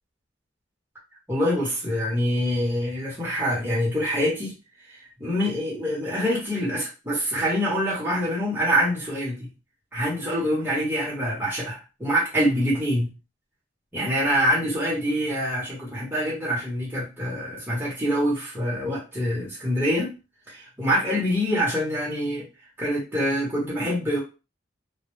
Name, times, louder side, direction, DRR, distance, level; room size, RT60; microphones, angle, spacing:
voice 1, 1.3-4.5 5.2-9.5 9.9-13.1 13.9-20.1 20.5-22.5 22.8-24.2, equal, 10° right, -6 dB, 0.8 m, -25 dB
2.1 x 2.0 x 3.0 m, 0.30 s
head